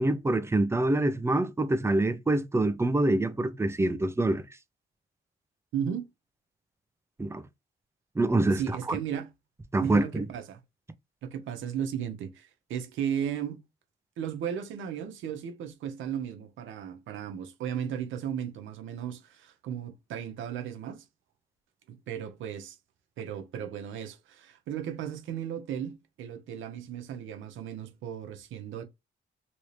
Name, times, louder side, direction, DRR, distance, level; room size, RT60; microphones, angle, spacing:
voice 1, 0.0-4.4 7.2-7.4 8.2-8.6 8.9-9.0 9.7-10.3, right 2 dB, 15° right, 0.6 m, -25 dB
voice 2, 5.7-6.1 8.5-9.3 9.8-10.6 11.2-13.6 14.2-21.1 21.9-22.8 23.2-28.8, right 9 dB, 80° right, 0.9 m, -35 dB
3.1 x 2.8 x 3.2 m
cardioid pair, 90°, 20 cm